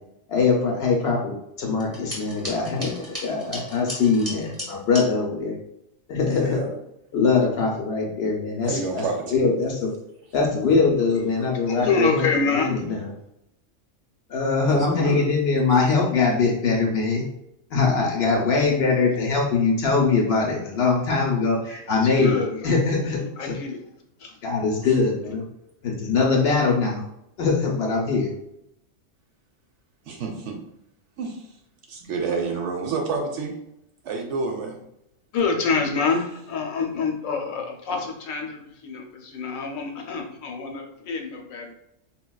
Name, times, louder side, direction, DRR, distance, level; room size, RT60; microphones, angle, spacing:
voice 1, 0.3-5.5 6.1-6.6 7.1-9.0 9.3-9.9 10.3-12.3 12.6-13.1 14.3-17.2 17.7-22.4 22.6-23.5 24.4-25.4 25.8-27.0 27.4-28.3, left 4 dB, 60° left, -1 dB, 0.7 m, -22 dB
sound 1, 1.8-5.1, left 1 dB, 10° right, 1.0 m, -36 dB
voice 2, 6.3-6.7 8.6-9.5 14.7-15.2 25.0-25.1 30.1-30.6 31.2-31.5 31.9-33.5 34.0-34.8, right 4 dB, 65° right, 1 dB, 0.8 m, -29 dB
voice 3, 11.7-12.9 21.9-22.8 23.2-23.8 24.2-24.4 35.3-41.7, left 4 dB, 80° left, 2 dB, 1.0 m, -27 dB
3.9 x 2.2 x 2.2 m, 0.82 s
omnidirectional pair, 1.4 m